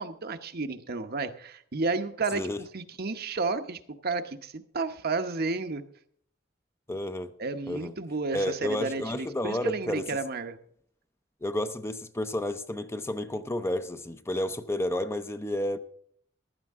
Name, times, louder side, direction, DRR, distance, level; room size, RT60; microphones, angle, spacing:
voice 1, 0.0-2.4 2.7-5.8 7.4-10.6, right 3 dB, 55° right, 7 dB, 0.9 m, -32 dB
voice 2, 6.9-7.3 7.7-7.9 8.3-10.1 11.4-15.8, left 1 dB, 15° left, 9 dB, 0.6 m, -31 dB
15.0 x 12.0 x 3.6 m, 0.63 s
head